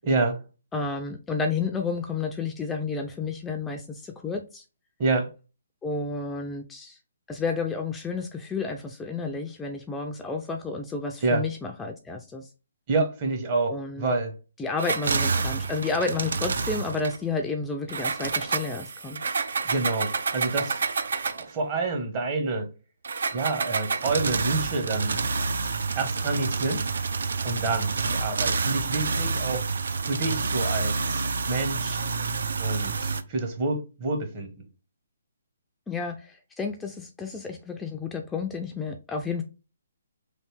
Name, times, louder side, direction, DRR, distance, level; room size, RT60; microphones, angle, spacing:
voice 1, 0.0-0.4 5.0-5.3 11.2-11.5 12.9-14.3 19.6-20.8 21.3-22.7 23.3-25.2 25.9-26.9 27.4-29.6 30.0-32.0 32.6-34.5, right 3 dB, 35° right, 0.9 m, -28 dB
voice 2, 0.7-4.6 5.8-7.0 7.3-12.5 13.7-14.1 14.6-19.2 35.9-39.4, left 4 dB, 10° left, 0.3 m, -31 dB
sound 1, 14.8-17.2 17.9-21.5 23.0-33.2, right 4 dB, 70° right, 0.3 m, -28 dB
3.2 x 2.7 x 3.2 m
hypercardioid pair, 145°, 0 cm